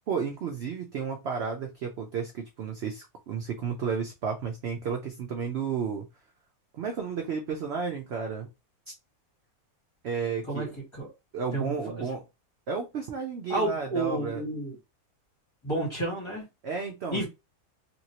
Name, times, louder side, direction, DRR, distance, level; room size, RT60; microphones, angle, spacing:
voice 1, 0.1-6.1 6.7-8.5 10.0-10.7 11.3-12.2 12.7-14.4 16.6-17.2, right 6 dB, 65° right, 0.6 m, -32 dB
voice 2, 13.5-14.7 15.6-16.5 17.1-17.2, right 2 dB, 20° left, 1.5 m, -30 dB
3.0 x 2.7 x 2.8 m
omnidirectional pair, 1.6 m